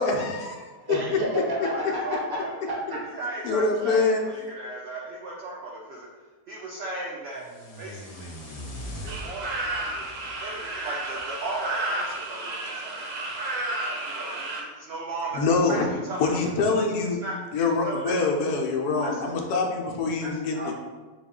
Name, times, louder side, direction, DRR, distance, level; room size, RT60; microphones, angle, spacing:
voice 1, 0.0-0.7 3.4-4.2 15.3-15.8 16.2-17.2 17.5-20.7, left 3 dB, 75° left, 2 dB, 1.1 m, -25 dB
voice 2, 0.7-3.0, equal, 20° right, -5 dB, 0.6 m, -30 dB
voice 3, 1.6-2.5 3.1-6.1 6.5-7.4 7.8-8.3 9.0-13.1 13.9-16.4 17.2-17.3 17.8-18.3 19.0-19.3 20.2-20.7, right 2 dB, 80° right, -3 dB, 0.5 m, -36 dB
sound 1, 7.3-11.4, equal, 35° left, 0.6 m, -41 dB
sound 2, 9.1-14.6, right 2 dB, 65° right, 0.9 m, -32 dB
4.0 x 2.3 x 3.6 m, 1.3 s
omnidirectional pair, 1.7 m